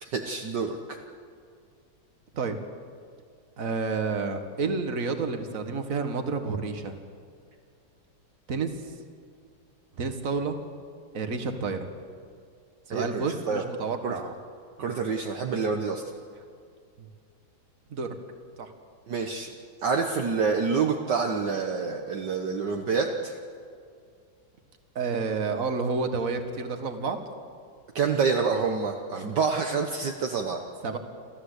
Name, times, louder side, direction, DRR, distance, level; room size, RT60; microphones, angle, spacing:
voice 1, 0.0-1.0 12.9-13.6 14.0-14.1 14.8-16.1 19.1-19.5 19.8-23.4 28.0-30.6, right 5 dB, 60° right, 3 dB, 1.7 m, -27 dB
voice 2, 3.6-7.0 8.5-8.7 10.0-10.6 11.1-11.9 12.9-14.4 14.8-15.0 17.0-17.1 17.9-18.1 18.6-18.7 25.0-27.2 30.8-31.0, right 4 dB, 45° right, 7 dB, 2.0 m, -30 dB
28.0 x 14.5 x 8.2 m, 2.3 s
omnidirectional pair, 2.2 m